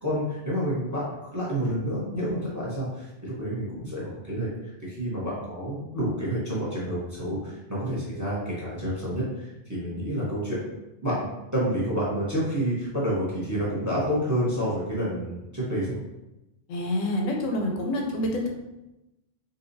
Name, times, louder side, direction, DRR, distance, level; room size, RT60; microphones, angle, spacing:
voice 1, 0.0-10.6 11.0-16.0, equal, 15° right, -7 dB, 0.7 m, -29 dB
voice 2, 16.7-18.5, left 1 dB, 80° left, 1 dB, 1.0 m, -27 dB
3.9 x 2.4 x 2.6 m, 0.97 s
omnidirectional pair, 1.3 m